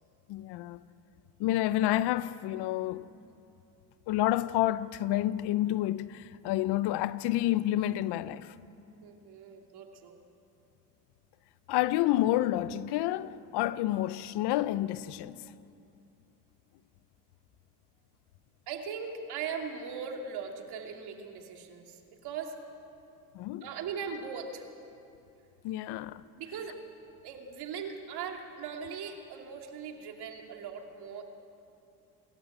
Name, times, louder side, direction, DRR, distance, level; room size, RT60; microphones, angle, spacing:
voice 1, 0.3-0.8 1.4-3.1 4.1-8.5 11.7-15.4 23.3-23.7 25.6-26.2, left 14 dB, 75° left, 0.8 m, -29 dB
voice 2, 9.0-10.2 18.7-22.6 23.6-24.7 26.4-26.8 27.2-31.2, right 6 dB, 70° right, 2.8 m, -39 dB
28.5 x 13.5 x 9.2 m
supercardioid pair, 80°, 41 cm